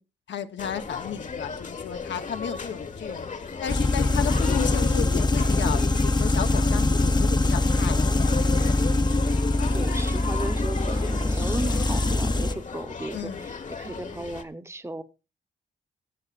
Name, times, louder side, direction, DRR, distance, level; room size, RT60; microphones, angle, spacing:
voice 1, 0.3-3.3 3.6-8.3 13.1-13.5, left 8 dB, 80° left, 8 dB, 1.0 m, -33 dB
sound 1, 0.6-14.4, left 4 dB, 45° left, 1.1 m, -36 dB
sound 2, 3.7-12.5, left 2 dB, 25° left, 0.6 m, -23 dB
voice 2, 9.7-15.0, right 2 dB, 15° right, 12 dB, 0.9 m, -35 dB
22.5 x 8.0 x 2.4 m, 0.28 s
wide cardioid pair, 115°, 19 cm